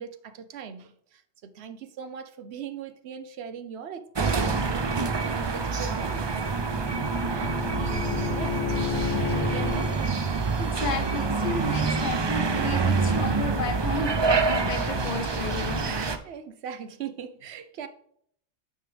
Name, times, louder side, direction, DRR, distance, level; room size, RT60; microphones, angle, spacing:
voice 1, 0.0-6.5 7.3-10.2 15.5-15.6 15.8-17.9, right 7 dB, 70° right, 1.0 m, -40 dB
sound 1, 4.2-16.2, right 4 dB, 35° right, 0.4 m, -26 dB
Bowed string instrument, 5.9-10.0, left 10 dB, 60° left, 0.7 m, -33 dB
voice 2, 10.6-15.9, left 3 dB, 45° left, 1.3 m, -32 dB
9.2 x 5.5 x 3.3 m
omnidirectional pair, 1.1 m